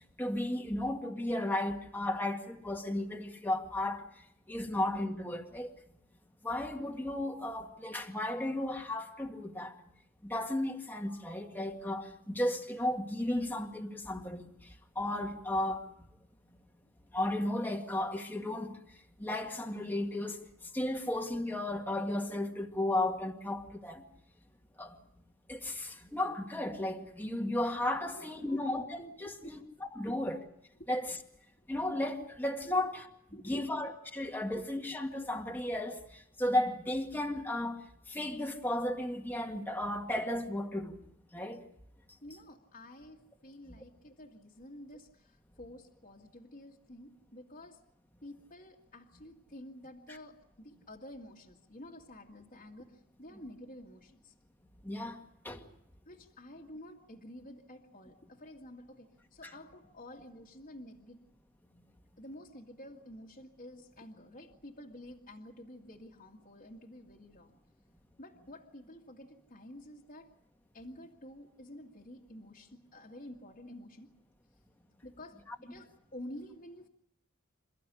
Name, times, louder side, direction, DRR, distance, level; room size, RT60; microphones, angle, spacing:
voice 1, 0.2-4.0 4.5-5.7 6.4-9.7 10.2-14.4 15.0-15.9 17.1-18.8 19.2-20.4 20.7-24.0 24.8-25.0 25.5-29.6 29.9-30.4 30.9-31.2 31.7-33.1 33.4-41.0 41.3-41.6 43.7-43.8 54.8-55.2 55.4-55.6 59.4-59.5, left 1 dB, 10° left, 2.0 m, -34 dB
voice 2, 28.1-28.8 29.4-29.5 30.0-30.2 30.8-30.9 32.7-32.8 33.3-33.7 34.5-34.6 42.2-47.8 48.2-54.3 56.1-61.2 62.2-67.6 68.2-70.3 70.7-74.1 75.0-76.9, left 1 dB, 40° left, 2.0 m, -50 dB
28.0 x 14.5 x 9.9 m
head